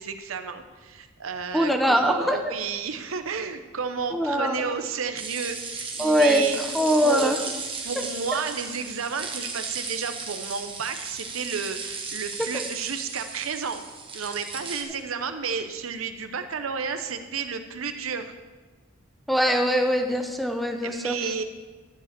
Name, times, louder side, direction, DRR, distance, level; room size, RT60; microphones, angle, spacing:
voice 1, 0.0-6.6 7.0-7.3 7.8-13.8 14.1-18.3 20.8-21.4, right 5 dB, 85° right, 8 dB, 0.8 m, -32 dB
voice 2, 1.5-2.5 4.1-4.7 6.0-7.4 19.3-21.1, equal, ahead, 5 dB, 0.8 m, -22 dB
sound 1, 5.2-14.8, right 4 dB, 25° right, 1.3 m, -35 dB
12.0 x 5.0 x 7.5 m, 1.3 s
head